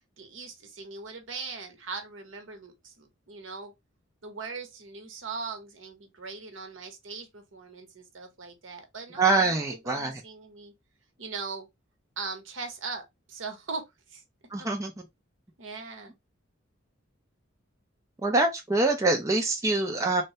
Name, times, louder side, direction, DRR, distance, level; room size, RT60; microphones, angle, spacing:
voice 1, 0.2-3.7 4.2-10.7 11.2-11.7 12.2-14.2 14.6-14.7 15.6-16.2, right 4 dB, 70° right, 0.8 m, -40 dB
voice 2, 9.2-10.2 14.5-14.9 18.2-20.2, right 2 dB, 15° right, 0.4 m, -25 dB
3.2 x 2.2 x 2.7 m
head